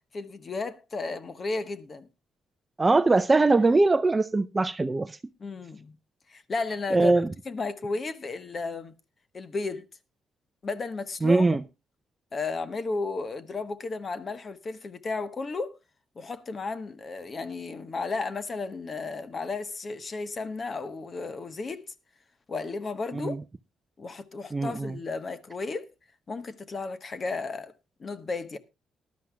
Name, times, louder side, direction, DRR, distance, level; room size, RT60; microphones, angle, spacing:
voice 1, 0.1-2.1 5.4-6.0 6.3-7.1 7.5-8.9 9.3-9.8 10.6-11.5 12.3-15.7 16.2-21.8 22.5-23.3 24.0-25.9 26.3-27.7 28.0-28.6, left 3 dB, 40° left, 1.1 m, -33 dB
voice 2, 2.8-5.2 6.9-7.3 11.2-11.6 23.1-23.4 24.5-25.0, right 3 dB, 25° right, 0.5 m, -22 dB
19.0 x 11.5 x 2.3 m
cardioid pair, 90°, 0 cm